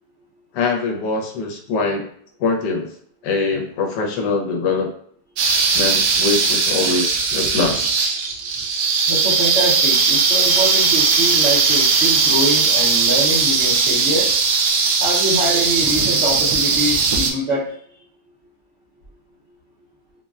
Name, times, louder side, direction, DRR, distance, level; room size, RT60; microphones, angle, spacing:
voice 1, 0.5-2.1 2.4-2.9 3.2-4.9 5.7-8.0, left 4 dB, 75° left, 2 dB, 1.2 m, -23 dB
sound 1, 5.4-17.3, right 5 dB, 75° right, 1.1 m, -18 dB
voice 2, 9.1-14.3 15.0-17.7, right 1 dB, 60° right, -7 dB, 0.7 m, -24 dB
3.8 x 2.1 x 2.3 m, 0.62 s
omnidirectional pair, 1.9 m